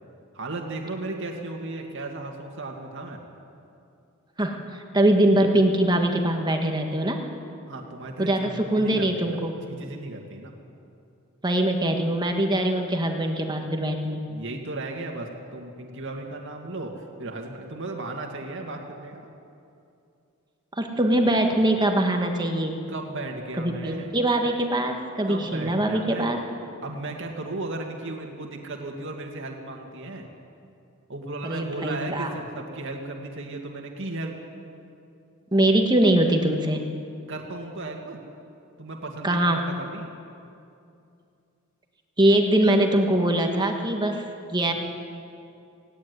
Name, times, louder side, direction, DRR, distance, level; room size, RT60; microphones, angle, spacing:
voice 1, 0.3-3.2 7.7-10.5 14.3-19.3 22.9-24.1 25.3-26.3 26.8-30.3 31.1-34.3 37.3-38.2 38.8-40.1, right 2 dB, 60° right, 1 dB, 2.2 m, -35 dB
voice 2, 4.4-7.2 8.2-9.6 11.4-14.2 20.8-22.8 23.6-26.4 31.4-32.3 35.5-36.8 39.2-39.6 42.2-44.2 44.5-44.7, right 1 dB, 20° right, 3 dB, 1.5 m, -22 dB
17.5 x 17.0 x 9.7 m, 2.6 s
head